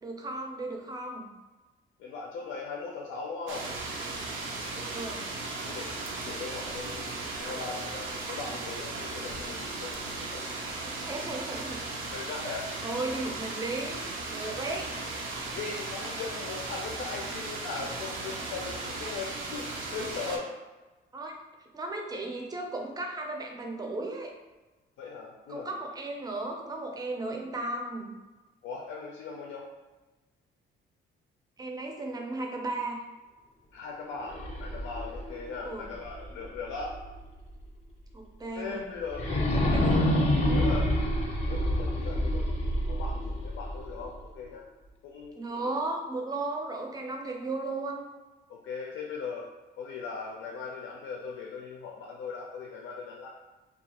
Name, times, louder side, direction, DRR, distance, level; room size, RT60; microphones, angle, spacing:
voice 1, 0.0-1.3 4.7-5.3 10.8-11.8 12.4-14.9 21.1-21.3 21.7-24.3 25.5-28.1 31.6-33.0 35.6-35.9 38.1-38.9 39.7-40.0 40.4-40.6 45.4-48.0, right 2 dB, 20° right, 2 dB, 0.4 m, -35 dB
voice 2, 2.0-3.7 5.7-6.0 6.2-10.8 12.1-12.6 15.5-20.5 25.0-25.7 28.6-29.7 33.7-37.0 38.5-40.9 41.5-44.6 45.0-45.7 48.5-49.5 49.8-53.3, left 4 dB, 85° left, 0 dB, 0.4 m, -39 dB
sound 1, 3.5-20.4, right 3 dB, 90° right, 0.5 m, -36 dB
sound 2, 34.2-37.2 37.6-37.7 39.1-44.2, left 1 dB, 35° left, 0.5 m, -28 dB
2.3 x 2.3 x 2.8 m, 1.2 s
cardioid pair, 90°, 20 cm